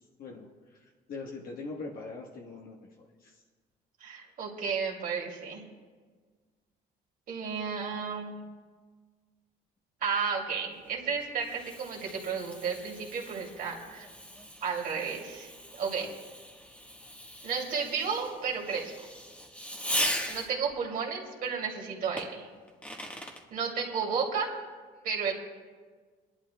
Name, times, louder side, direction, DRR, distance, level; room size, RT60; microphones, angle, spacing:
voice 1, 1.1-2.8 3.2-3.3 16.0-16.1, left 3 dB, 60° left, -1 dB, 1.2 m, -41 dB
voice 2, 4.0-5.6 7.3-8.4 10.0-14.1 14.6-16.1 17.4-19.1 20.3-22.5 23.5-24.5 25.0-25.3, right 6 dB, 55° right, -1 dB, 2.4 m, -33 dB
Fireworks, 10.8-20.7 22.2-23.4, equal, 10° left, 1.3 m, -39 dB
23.5 x 11.5 x 2.2 m, 1.5 s
cardioid pair, 100°, 17 cm